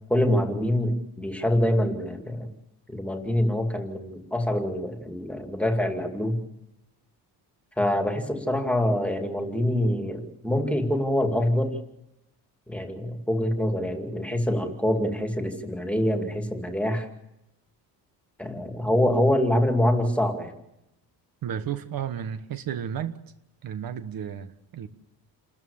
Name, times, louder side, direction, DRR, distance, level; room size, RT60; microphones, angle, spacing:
voice 1, 0.1-2.5 2.9-6.4 7.8-11.8 12.7-17.1 18.4-20.5, left 1 dB, 5° left, 4 dB, 2.5 m, -25 dB
voice 2, 21.4-23.2 23.6-24.9, right 9 dB, 55° right, 10 dB, 1.3 m, -33 dB
29.0 x 13.5 x 7.3 m, 0.87 s
cardioid pair, 160°, 41 cm